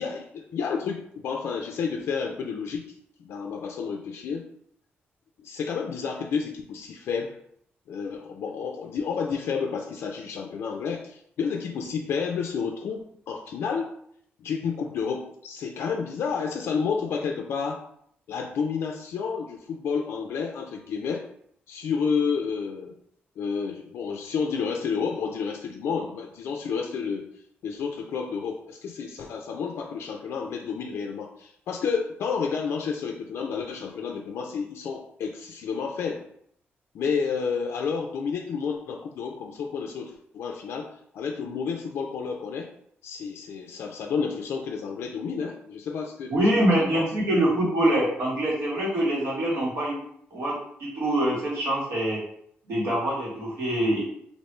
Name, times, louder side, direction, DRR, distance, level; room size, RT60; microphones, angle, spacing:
voice 1, 0.0-2.9 3.2-4.4 5.4-7.4 7.9-13.0 13.3-13.9 14.4-17.8 18.3-21.3 21.7-23.0 23.4-27.3 27.6-36.2 36.9-40.9 41.1-42.7 43.0-47.1, left 6 dB, 85° left, 2 dB, 0.3 m, -30 dB
voice 2, 46.3-50.0 50.3-52.2 52.7-54.0, right 1 dB, 85° right, -5 dB, 1.4 m, -24 dB
3.0 x 2.5 x 3.2 m, 0.68 s
wide cardioid pair, 175°, 4 cm